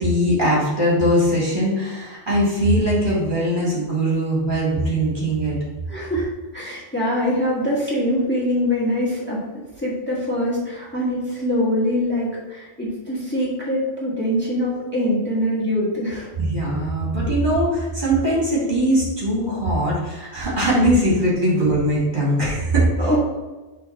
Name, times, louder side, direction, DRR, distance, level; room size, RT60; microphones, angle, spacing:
voice 1, 0.0-5.6 16.4-22.9, right 1 dB, 45° right, -6 dB, 2.3 m, -20 dB
voice 2, 5.9-6.2 6.5-16.3 23.0-23.2, left 1 dB, 10° left, -6 dB, 1.6 m, -23 dB
6.2 x 3.3 x 5.8 m, 1.2 s
omnidirectional pair, 1.2 m